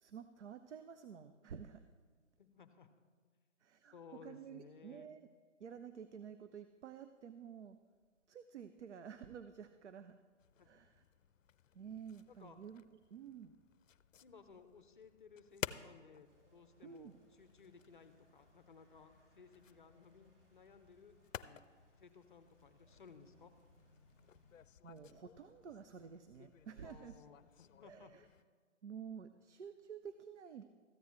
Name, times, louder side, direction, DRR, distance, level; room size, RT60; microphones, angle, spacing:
voice 1, 0.0-1.9 3.6-4.0 4.2-5.2 5.6-7.8 8.3-10.2 10.6-11.0 11.7-12.8 13.1-13.5 16.8-17.2 24.8-27.1 27.8-28.3 28.8-30.6, right 7 dB, 65° right, 10 dB, 0.6 m, -51 dB
voice 2, 2.4-2.9 3.9-5.1 10.6-10.7 12.3-12.6 14.2-21.6 22.0-23.5 26.8-28.1, left 5 dB, 40° left, 10 dB, 0.6 m, -59 dB
sound 1, 10.4-28.4, left 9 dB, 80° left, 0.5 m, -54 dB
sound 2, 16.2-24.7, equal, 50° right, 3.6 m, -71 dB
14.0 x 9.3 x 3.0 m, 1.5 s
hypercardioid pair, 160°, 38 cm